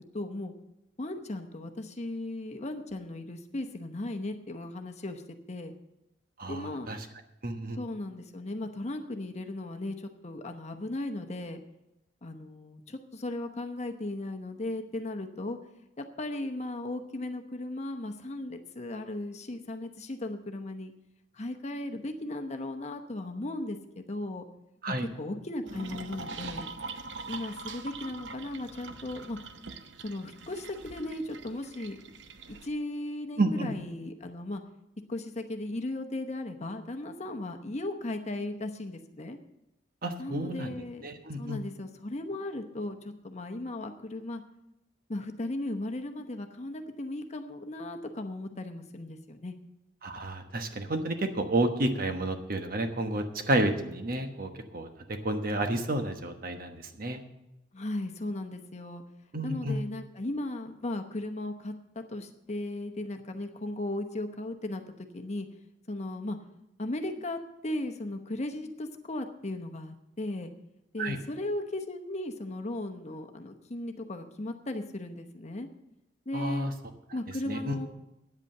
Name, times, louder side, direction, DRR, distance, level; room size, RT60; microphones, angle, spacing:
voice 1, 0.1-0.5 1.0-5.2 5.5-5.7 6.5-6.9 7.7-11.6 12.2-15.6 16.0-20.9 21.3-23.8 24.1-24.4 25.2-26.7 27.3-29.4 30.0-32.0 32.5-34.6 35.1-39.4 40.2-41.1 41.4-44.4 45.1-49.6 57.7-59.0 59.4-65.5 65.9-66.4 66.8-70.5 70.9-75.7 76.3-76.7 77.1-77.9, left 1 dB, 35° left, 6 dB, 0.9 m, -36 dB
voice 2, 6.4-7.1 7.4-7.8 24.8-25.1 33.4-33.7 40.0-41.6 50.0-57.2 59.3-59.8 71.0-71.2 76.3-76.7 77.4-77.8, right 1 dB, 50° right, 6 dB, 1.2 m, -31 dB
sound 1, 25.7-32.7, right 4 dB, 65° right, 0.8 m, -43 dB
9.6 x 8.2 x 7.7 m, 0.89 s
head